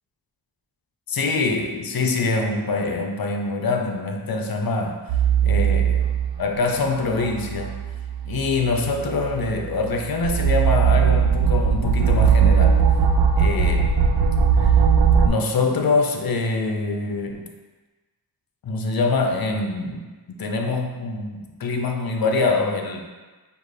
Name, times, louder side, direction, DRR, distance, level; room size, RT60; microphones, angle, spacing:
voice 1, 1.1-5.0 5.4-6.1 6.4-7.7 8.3-12.8 13.4-13.9 14.6-14.8 15.2-17.4 18.6-23.0, left 3 dB, 55° left, 3 dB, 0.6 m, -24 dB
sound 1, 5.1-6.4 7.1-15.3, right 6 dB, 85° right, 0.5 m, -19 dB
5.0 x 2.5 x 3.2 m, 1.3 s
wide cardioid pair, 75°, 43 cm